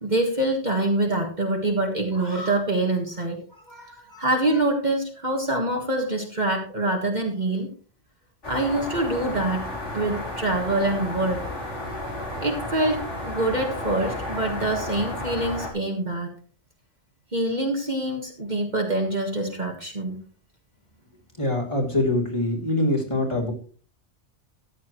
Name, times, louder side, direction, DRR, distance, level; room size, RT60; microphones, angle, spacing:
voice 1, 0.0-3.4 3.7-7.7 8.5-9.6 9.9-11.4 12.4-16.3 17.3-20.2, right 2 dB, 40° right, 1 dB, 1.8 m, -25 dB
sound 1, 8.4-15.7, left 1 dB, 75° left, 3.4 m, -32 dB
voice 2, 21.4-23.5, left 1 dB, 25° left, -2 dB, 3.3 m, -24 dB
14.0 x 10.0 x 3.1 m, 0.39 s
omnidirectional pair, 1.2 m